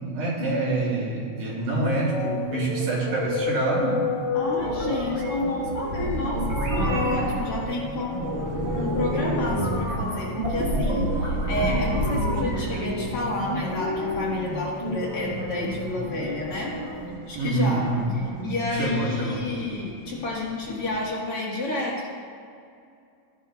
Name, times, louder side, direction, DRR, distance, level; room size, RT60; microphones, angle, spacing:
voice 1, 0.0-4.1 17.4-18.1 18.7-19.5, right 2 dB, 85° right, -3 dB, 3.5 m, -26 dB
sound 1, 1.7-17.1, left 5 dB, 75° left, 2.2 m, -34 dB
voice 2, 4.3-8.2 8.7-16.8 17.3-17.9 18.1-22.1, left 2 dB, 55° left, -4 dB, 2.2 m, -30 dB
sound 2, 4.6-21.0, right 1 dB, 55° right, 0.7 m, -30 dB
14.5 x 9.8 x 2.3 m, 2.4 s
omnidirectional pair, 3.4 m